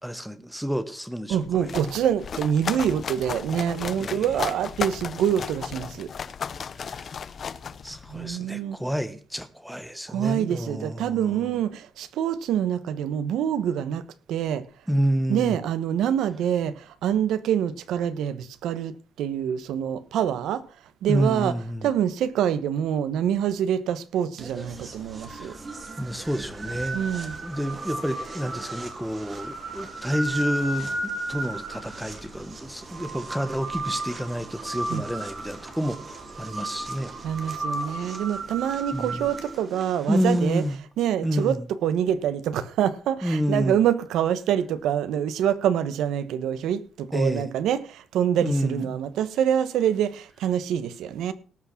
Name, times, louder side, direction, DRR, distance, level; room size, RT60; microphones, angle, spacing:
voice 1, 0.0-1.7 4.0-4.2 6.8-7.1 7.8-11.5 14.9-15.6 21.1-21.9 25.3-25.5 26.0-27.0 27.4-37.1 38.9-39.3 40.1-40.7 41.2-41.7 43.2-43.8 47.1-47.5 48.4-49.0, equal, ahead, 1.1 m, -29 dB
sound 1, 1.3-8.3, left 6 dB, 35° left, 0.6 m, -35 dB
voice 2, 1.3-6.1 8.1-8.8 10.1-14.0 14.3-14.6 15.3-20.6 21.0-25.5 26.9-27.4 34.9-35.0 37.2-40.6 41.0-51.3, right 9 dB, 85° right, 1.1 m, -26 dB
sound 2, 24.4-40.7, right 2 dB, 25° right, 2.3 m, -35 dB
18.0 x 6.2 x 5.8 m
cardioid pair, 175°, 0 cm